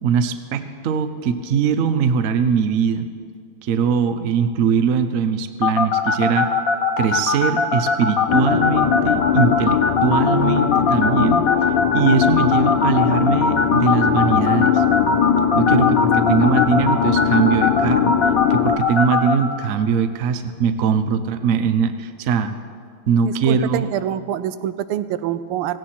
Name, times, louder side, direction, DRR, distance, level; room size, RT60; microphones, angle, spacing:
voice 1, 0.0-3.0 3.6-6.6 7.0-11.4 11.9-14.8 15.5-18.1 18.5-22.5 23.1-23.8, right 6 dB, 60° right, 9 dB, 0.8 m, -21 dB
sound 1, 5.6-19.3, left 4 dB, 50° left, 1.3 m, -19 dB
sound 2, 8.3-18.8, left 9 dB, 75° left, 1.1 m, -20 dB
voice 2, 23.2-25.8, right 11 dB, 85° right, 13 dB, 1.5 m, -25 dB
17.0 x 16.5 x 4.4 m, 2.1 s
omnidirectional pair, 2.3 m